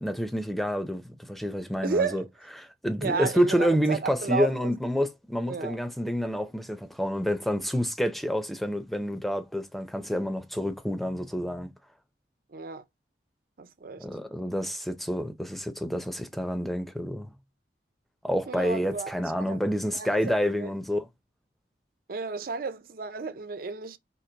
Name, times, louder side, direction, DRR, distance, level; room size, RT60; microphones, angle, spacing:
voice 1, 0.0-2.2 2.6-11.7 14.0-17.3 18.2-21.1, equal, ahead, 0.5 m, -28 dB
voice 2, 1.8-2.2 3.0-4.7 5.5-5.8 12.5-12.8 13.6-14.0 18.5-19.1 19.4-19.6 19.9-20.7 22.1-24.0, right 4 dB, 50° right, 0.5 m, -32 dB
4.5 x 3.0 x 3.8 m
head